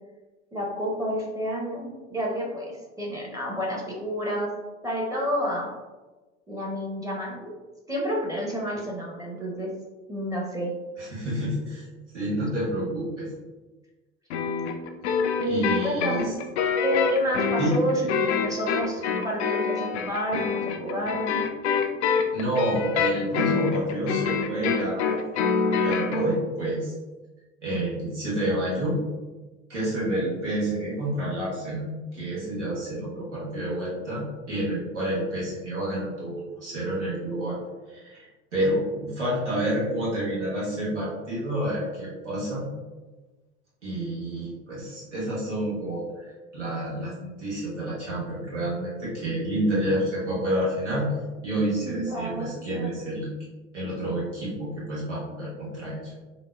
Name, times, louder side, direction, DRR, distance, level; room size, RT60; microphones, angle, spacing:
voice 1, 0.5-4.5 4.8-5.7 6.5-7.5 7.9-9.7 10.1-10.7 15.4-16.3 16.8-21.4 51.8-52.9, equal, 10° right, -3 dB, 0.8 m, -29 dB
voice 2, 11.0-11.9 12.1-13.3 15.5-16.3 17.6-18.0 22.3-26.9 27.6-29.0 29.7-37.6 37.9-38.3 38.5-42.6 43.8-51.1 51.4-53.3 53.7-56.1, right 1 dB, 85° right, -7 dB, 1.3 m, -29 dB
sound 1, 14.3-26.3, left 5 dB, 75° left, 0.5 m, -26 dB
4.0 x 2.5 x 2.3 m, 1.2 s
figure-of-eight pair, 70°, 35 cm